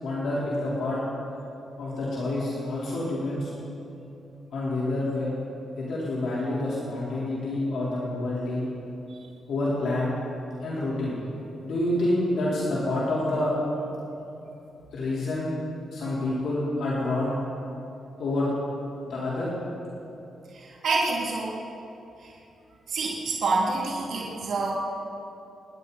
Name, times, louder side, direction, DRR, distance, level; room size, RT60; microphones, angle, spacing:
voice 1, 0.0-1.0 1.8-3.5 4.5-5.3 5.8-8.7 9.5-10.1 10.6-11.3 11.6-13.6 14.9-15.5 15.9-17.4 18.2-18.5 19.0-19.5, left 1 dB, 70° left, -8 dB, 3.9 m, -28 dB
voice 2, 20.5-21.6 22.2-22.3 22.9-24.7, right 3 dB, 65° right, -5 dB, 2.7 m, -28 dB
28.0 x 11.5 x 4.2 m, 2.8 s
cardioid pair, 105°, 0 cm